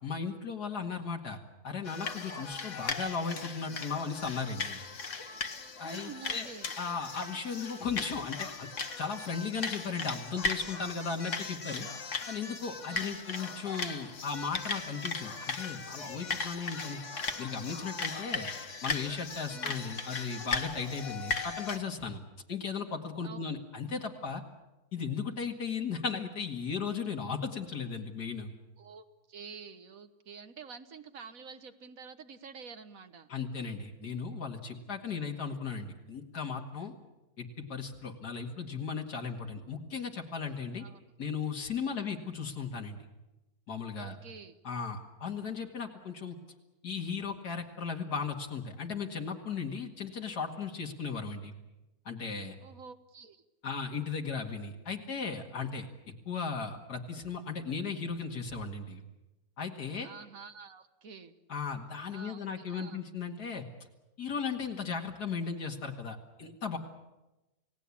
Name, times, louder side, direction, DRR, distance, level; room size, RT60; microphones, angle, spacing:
voice 1, 0.0-1.4 1.6-4.8 5.8-6.5 6.8-8.7 9.0-11.9 12.3-17.0 17.4-18.5 18.8-22.2 22.5-24.4 24.9-28.5 33.3-36.9 37.4-40.8 41.2-43.0 43.7-44.2 44.6-46.4 46.8-51.5 52.1-52.6 53.6-55.9 56.3-59.0 59.6-60.1 61.5-63.6 64.2-66.8, left 5 dB, 85° left, 2 dB, 2.6 m, -36 dB
sound 1, 1.8-21.8, left 4 dB, 55° left, 1.5 m, -38 dB
voice 2, 5.8-6.7 12.9-13.2 19.5-19.7 23.2-23.5 28.8-33.3 34.9-35.0 40.7-41.0 41.9-42.1 44.0-44.6 52.6-53.4 60.0-61.3 62.1-63.0, right 5 dB, 60° right, 10 dB, 1.7 m, -48 dB
29.5 x 17.5 x 8.6 m, 1.0 s
omnidirectional pair, 1.7 m